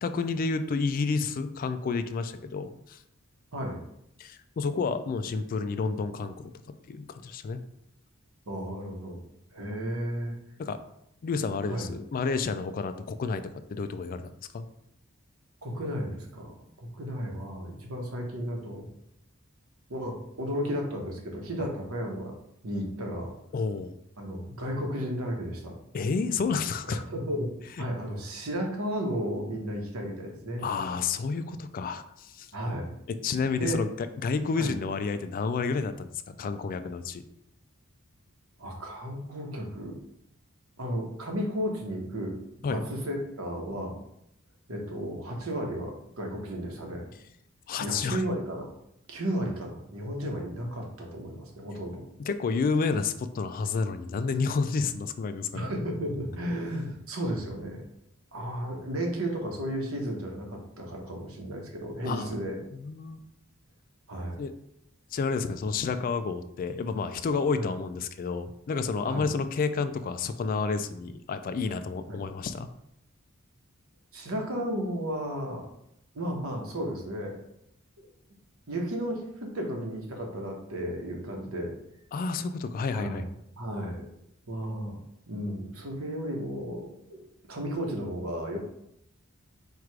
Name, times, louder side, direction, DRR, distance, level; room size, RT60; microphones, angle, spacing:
voice 1, 0.0-3.0 4.2-6.5 6.9-7.6 10.6-10.8 11.2-13.4 13.7-14.7 23.5-23.9 25.9-27.0 30.6-32.5 33.2-37.2 42.6-42.8 47.7-48.2 52.2-55.7 56.7-56.8 62.0-62.3 62.7-63.2 64.4-64.5 65.1-72.7 82.1-83.2, left 4 dB, 40° left, 10 dB, 0.3 m, -30 dB
voice 2, 8.5-9.2 9.5-10.4 11.7-11.9 15.6-18.9 19.9-22.3 22.6-23.3 24.2-25.8 26.9-30.7 32.5-32.9 33.4-33.8 34.5-34.7 38.6-40.0 40.8-44.0 44.7-47.1 47.8-48.7 49.1-52.1 55.5-57.8 58.3-62.6 64.1-64.4 67.6-67.7 69.0-69.2 72.1-72.2 74.1-75.7 76.1-77.4 78.7-81.7 82.9-83.3 83.6-84.1 84.5-85.0 85.3-87.2 87.5-88.6, equal, 80° right, 1 dB, 1.0 m, -33 dB
4.6 x 2.4 x 4.6 m, 0.78 s
head